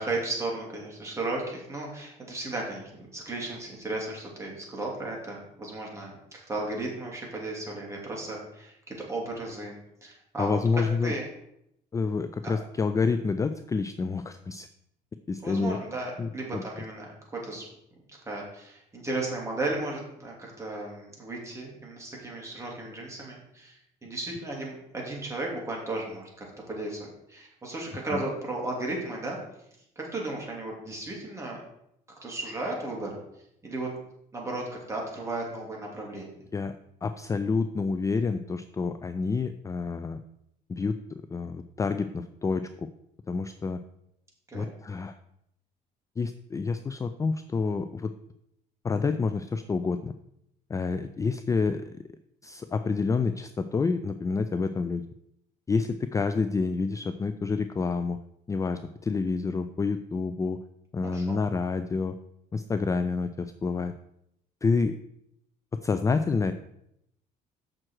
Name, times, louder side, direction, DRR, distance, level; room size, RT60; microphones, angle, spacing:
voice 1, 0.0-9.7 10.0-10.6 11.0-11.2 15.4-17.7 18.2-29.4 30.0-31.6 32.2-33.2 33.6-33.9 34.3-36.3 44.5-44.7 61.0-61.4, right 2 dB, 15° right, -2 dB, 2.9 m, -35 dB
voice 2, 10.4-11.1 11.9-14.7 15.3-15.8 16.2-16.6 28.1-28.2 36.5-36.7 37.0-40.2 40.7-42.9 43.3-43.8 44.5-45.1 46.2-48.1 48.8-50.1 50.7-51.9 52.4-55.0 55.7-58.2 58.5-60.6 60.9-62.2 62.5-63.9 64.6-65.0 65.8-66.5, left 4 dB, 20° left, 10 dB, 0.3 m, -28 dB
7.5 x 6.2 x 4.5 m, 0.78 s
cardioid pair, 110°, 17 cm